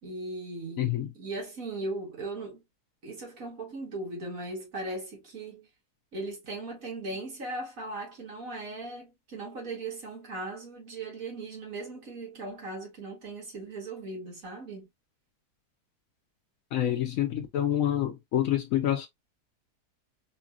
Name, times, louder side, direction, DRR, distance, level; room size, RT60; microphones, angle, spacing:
voice 1, 0.0-2.6 3.0-5.7 6.1-14.9, right 2 dB, 55° right, 2.1 m, -38 dB
voice 2, 0.8-1.1 16.7-19.1, left 11 dB, 65° left, 1.0 m, -27 dB
4.4 x 2.8 x 2.4 m
omnidirectional pair, 1.7 m